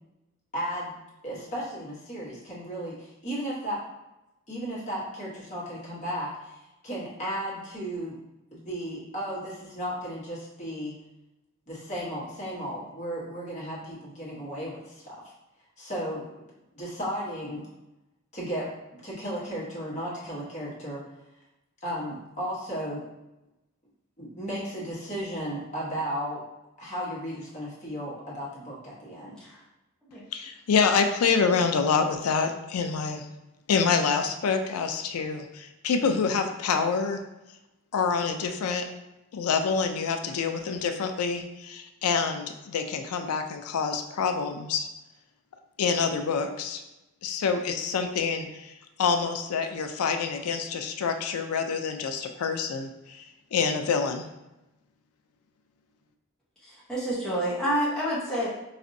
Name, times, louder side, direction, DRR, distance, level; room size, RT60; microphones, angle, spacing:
voice 1, 0.5-0.9 1.2-3.8 4.5-8.2 8.5-10.9 11.7-15.2 15.8-16.3 16.7-17.7 18.3-21.0 21.8-23.1 24.2-26.4 26.8-29.4, equal, 35° left, -7 dB, 1.1 m, -34 dB
voice 2, 30.3-33.3 33.7-37.2 37.9-38.9 39.3-44.9 45.8-46.8 47.2-48.7 49.0-53.3 53.5-54.2, left 5 dB, 90° left, 6 dB, 0.4 m, -27 dB
voice 3, 56.6-58.5, equal, 5° left, -8 dB, 0.8 m, -28 dB
4.1 x 2.5 x 2.6 m, 0.95 s
head